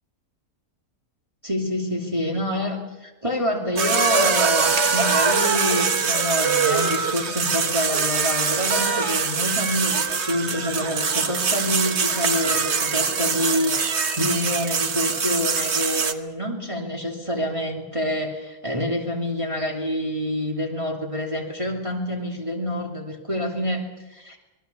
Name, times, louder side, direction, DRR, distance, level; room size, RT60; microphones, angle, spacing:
voice 1, 1.4-24.4, left 1 dB, 20° right, -2 dB, 3.0 m, -27 dB
sound 1, 3.8-16.1, right 5 dB, 50° right, 1.5 m, -23 dB
26.5 x 20.5 x 7.0 m, 1.0 s
omnidirectional pair, 1.6 m